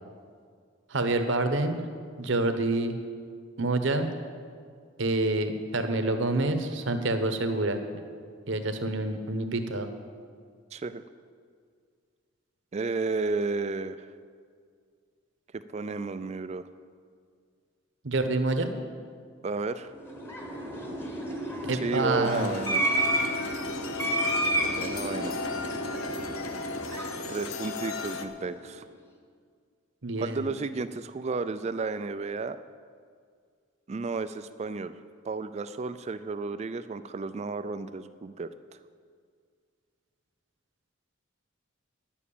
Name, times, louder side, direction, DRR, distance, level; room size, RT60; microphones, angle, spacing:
voice 1, 0.9-1.8 2.2-3.0 3.6-4.1 5.0-7.8 8.5-9.9 18.0-18.7 21.6-22.5 30.0-30.5, right 2 dB, 60° right, 7 dB, 1.0 m, -27 dB
voice 2, 10.7-11.0 12.7-14.1 15.5-16.6 19.4-19.9 21.7-22.8 24.7-25.4 27.3-28.8 30.2-32.6 33.9-34.9 35.2-38.5, right 3 dB, 30° right, 12 dB, 0.3 m, -32 dB
sound 1, 20.0-28.5, right 1 dB, 10° left, 1.1 m, -31 dB
sound 2, 22.2-28.3, left 4 dB, 85° left, 0.8 m, -36 dB
10.5 x 7.2 x 8.5 m, 2.1 s
head